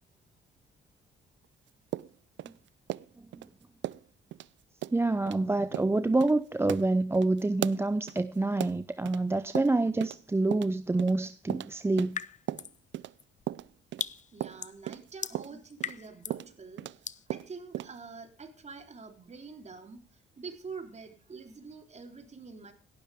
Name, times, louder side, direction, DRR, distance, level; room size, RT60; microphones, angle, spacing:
sound 1, 1.9-3.5 3.8-4.1 4.3-4.5 4.8-5.0 5.3-5.4 5.7-5.9 6.2-6.3 6.7-9.2 9.5-10.2 10.5-13.1 13.5-17.0 17.3-18.0, right 13 dB, 70° right, 0.5 m, -37 dB
voice 1, 4.9-12.2, right 2 dB, 10° right, 0.6 m, -27 dB
sound 2, 12.1-12.8 13.2-16.5 17.0-17.3, left 7 dB, 40° left, 0.7 m, -39 dB
voice 2, 14.3-22.7, right 4 dB, 35° right, 3.7 m, -46 dB
17.0 x 12.5 x 3.5 m
cardioid pair, 90°, 20 cm